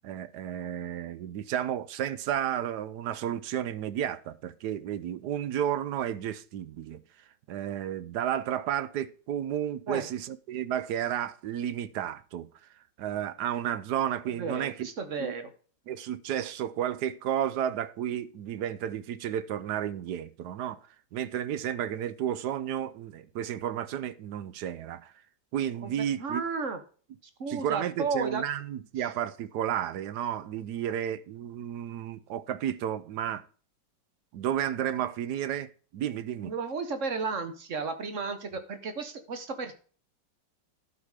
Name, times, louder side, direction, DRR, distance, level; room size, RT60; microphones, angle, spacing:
voice 1, 0.0-7.0 7.5-12.5 13.0-14.8 15.2-15.3 15.9-20.8 21.1-25.1 25.5-26.4 27.5-33.4 34.3-36.5, right 10 dB, 70° right, 1.1 m, -32 dB
voice 2, 14.2-15.5 25.8-25.9 26.2-26.8 27.4-28.4 29.0-29.1 36.4-39.7, right 4 dB, 45° right, 1.3 m, -33 dB
12.0 x 4.9 x 4.9 m
omnidirectional pair, 2.0 m